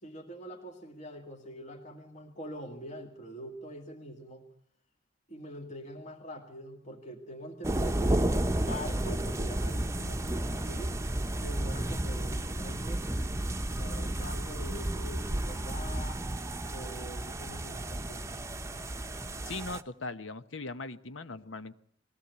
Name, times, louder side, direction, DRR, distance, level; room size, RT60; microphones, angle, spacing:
voice 1, 0.0-4.4 5.3-10.2 10.7-11.0 11.4-13.2 13.8-16.2 16.7-18.3, equal, 40° left, 2 dB, 2.2 m, -44 dB
sound 1, 7.6-19.8, right 1 dB, 15° right, 0.9 m, -32 dB
voice 2, 19.4-21.7, left 3 dB, 75° left, 12 dB, 1.1 m, -39 dB
21.0 x 16.5 x 8.2 m, 0.64 s
head